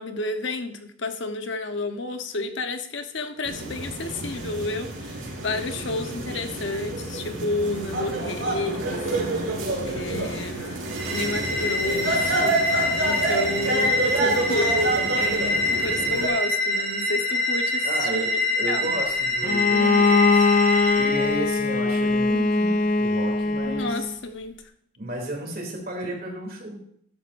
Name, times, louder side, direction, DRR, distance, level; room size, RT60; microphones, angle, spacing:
voice 1, 0.0-9.0 9.8-12.7 13.0-19.0 23.6-24.6, left 2 dB, 65° left, 7 dB, 1.0 m, -31 dB
sound 1, 3.5-16.3, right 2 dB, 75° right, 4.2 m, -28 dB
voice 2, 9.7-10.5 17.8-24.0 25.0-26.8, right 1 dB, 45° right, 0 dB, 2.9 m, -33 dB
sound 2, 10.9-21.4, left 1 dB, 25° right, 4.7 m, -26 dB
Bowed string instrument, 19.4-24.1, left 3 dB, 40° left, 0.6 m, -21 dB
13.0 x 11.5 x 2.6 m, 0.69 s
head